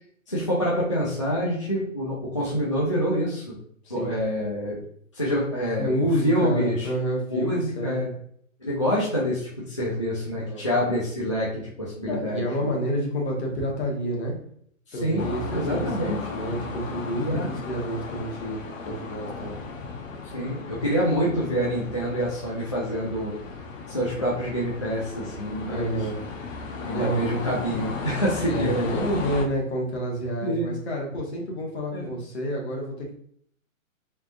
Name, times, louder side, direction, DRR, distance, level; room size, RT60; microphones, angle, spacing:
voice 1, 0.3-3.6 3.9-4.8 5.1-5.9 6.2-6.9 7.3-8.1 8.6-12.7 14.9-16.2 17.1-17.5 20.3-23.3 23.8-26.1 26.8-29.0 30.4-30.7 31.9-32.1, equal, 25° left, -7 dB, 0.3 m, -26 dB
voice 2, 5.8-8.1 10.4-10.7 12.1-14.3 14.9-19.6 25.7-26.2 26.9-27.2 28.5-33.1, equal, 50° left, -1 dB, 1.3 m, -29 dB
sound 1, 15.2-29.5, left 4 dB, 70° left, 0.8 m, -36 dB
3.8 x 3.5 x 2.5 m, 0.64 s
hypercardioid pair, 160°, 41 cm